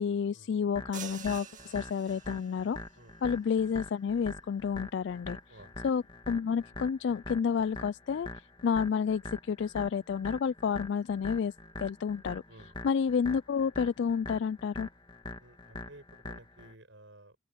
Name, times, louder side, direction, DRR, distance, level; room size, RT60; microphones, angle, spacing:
voice 1, 0.0-2.8 3.2-5.4 5.8-11.5 11.8-12.4 12.8-14.9, left 6 dB, 60° left, 0.3 m, -30 dB
sound 1, 0.8-16.7, left 2 dB, 25° left, 2.3 m, -44 dB
sound 2, 0.9-2.7, right 8 dB, 40° right, 2.3 m, -46 dB
voice 2, 15.4-17.4, right 1 dB, 65° right, 6.5 m, -54 dB
open air
head